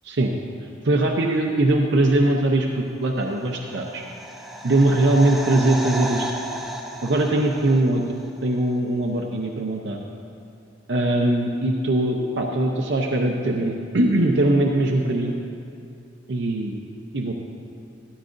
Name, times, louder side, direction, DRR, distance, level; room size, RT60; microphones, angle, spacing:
voice 1, 0.8-4.0 4.6-6.2 7.0-10.0 10.9-15.3 16.3-16.8 17.1-17.3, right 2 dB, 70° right, 0 dB, 0.7 m, -21 dB
sound 1, 3.4-8.3 8.6-8.7, right 1 dB, ahead, 0.5 m, -34 dB
13.0 x 12.0 x 2.6 m, 2.4 s
head